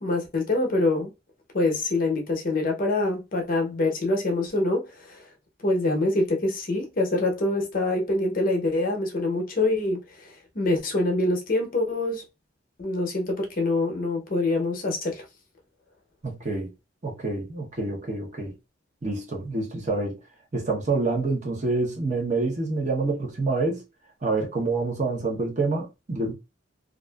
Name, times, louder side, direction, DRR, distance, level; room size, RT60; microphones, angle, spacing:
voice 1, 0.0-1.1 1.5-5.2 5.6-12.2 12.8-15.2, left 2 dB, 45° left, 0.7 m, -25 dB
voice 2, 16.2-16.7 17.0-18.5 19.0-20.2 20.5-23.8 24.2-26.3, right 3 dB, 35° right, 0.8 m, -27 dB
2.5 x 2.4 x 2.2 m
head